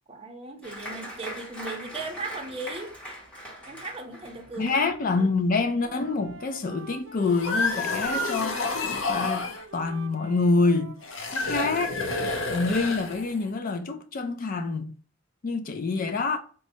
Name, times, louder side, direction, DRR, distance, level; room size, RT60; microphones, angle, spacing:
voice 1, 0.1-2.9 3.7-4.9, right 3 dB, 30° right, 0.7 m, -37 dB
Applause, 0.6-7.7 8.0-8.7 9.1-9.2 9.5-10.0, equal, 5° left, 1.0 m, -42 dB
voice 2, 4.6-8.6 9.1-9.5 9.7-11.0 11.3-12.0 12.5-14.9 15.4-16.4, left 3 dB, 45° left, 0.4 m, -26 dB
Wind instrument woodwind instrument, 4.9-5.3 5.6-12.2, right 4 dB, 70° right, 0.6 m, -46 dB
sound 1, 7.2-9.6 11.0-13.5, left 3 dB, 80° left, 0.7 m, -29 dB
4.1 x 2.3 x 2.7 m
head